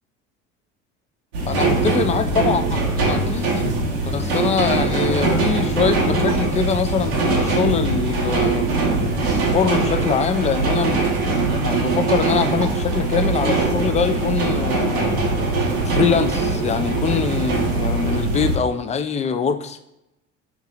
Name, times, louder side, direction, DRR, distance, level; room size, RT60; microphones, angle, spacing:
sound 1, 1.3-18.6, right 3 dB, 90° right, 1.0 m, -21 dB
voice 1, 1.5-2.8 3.1-3.6 3.9-8.7 9.2-11.0 11.5-15.2 15.9-19.8, left 6 dB, 20° left, 9 dB, 0.4 m, -23 dB
5.8 x 2.8 x 2.4 m, 0.86 s
hypercardioid pair, 75°, 31 cm